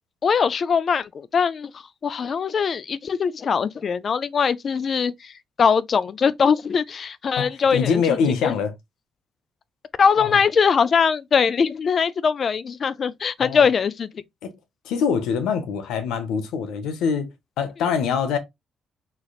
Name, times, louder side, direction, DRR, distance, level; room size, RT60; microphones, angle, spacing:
voice 1, 0.2-1.7 2.0-5.3 5.6-8.0 8.4-8.5 10.0-14.1, left 6 dB, 50° left, 0.3 m, -21 dB
voice 2, 7.4-8.7 10.2-10.4 13.4-13.6 14.4-14.6 14.8-18.4, left 6 dB, 90° left, 0.8 m, -24 dB
3.8 x 3.3 x 2.4 m
cardioid pair, 90°, 0 cm